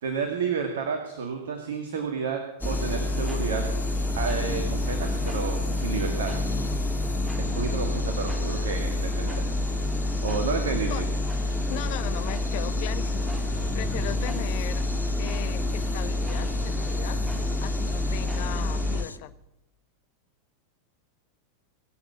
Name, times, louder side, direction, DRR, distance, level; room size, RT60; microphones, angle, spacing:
voice 1, 0.0-3.6 4.2-6.3 7.4-9.5 10.2-11.0, right 5 dB, 65° right, 4 dB, 2.2 m, -31 dB
sound 1, 2.6-19.2, left 4 dB, 85° left, 0.7 m, -42 dB
sound 2, 2.6-19.0, left 2 dB, 5° right, 2.7 m, -28 dB
voice 2, 11.7-14.8 15.2-17.2 17.6-19.3, left 15 dB, 50° left, 13 dB, 1.1 m, -38 dB
22.5 x 8.1 x 8.0 m, 0.87 s
figure-of-eight pair, 90°, 0 cm